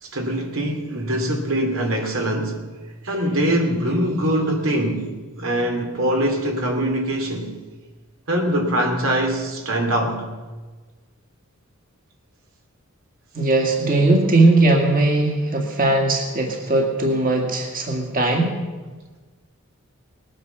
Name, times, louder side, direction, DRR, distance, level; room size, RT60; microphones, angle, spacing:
voice 1, 0.0-2.6 3.0-5.1 5.4-7.5 8.3-10.3, right 1 dB, 80° right, 3 dB, 2.6 m, -23 dB
voice 2, 13.3-18.5, right 2 dB, 40° right, 1 dB, 2.2 m, -19 dB
19.5 x 9.9 x 6.9 m, 1.3 s
head